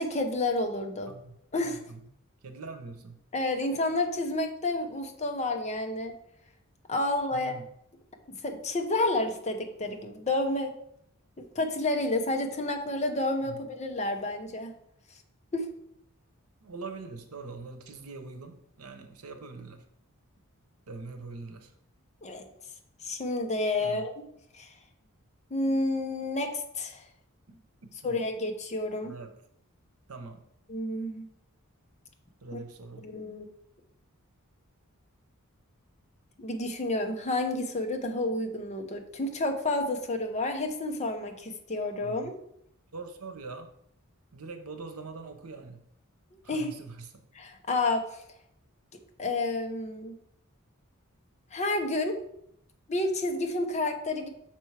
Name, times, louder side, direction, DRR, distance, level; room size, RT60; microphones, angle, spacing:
voice 1, 0.0-1.1 1.5-1.8 3.3-6.1 6.9-7.6 8.4-10.7 11.4-14.7 15.5-15.7 22.2-22.5 23.0-24.2 24.5-24.7 25.5-27.0 28.0-29.1 30.7-31.3 32.5-32.6 33.0-33.5 36.4-42.3 46.5-46.7 47.3-48.1 49.2-50.1 51.5-52.2 52.9-54.3, left 2 dB, 30° left, 5 dB, 0.8 m, -30 dB
voice 2, 1.6-2.0 2.4-3.2 7.3-7.6 13.4-13.6 16.6-19.8 20.9-21.7 23.8-24.1 27.5-28.2 29.0-29.3 30.1-30.4 32.4-33.1 42.0-42.3 42.9-43.7 44.3-45.8 46.4-47.2, right 3 dB, 80° right, 7 dB, 0.9 m, -43 dB
6.1 x 4.5 x 4.8 m, 0.72 s
head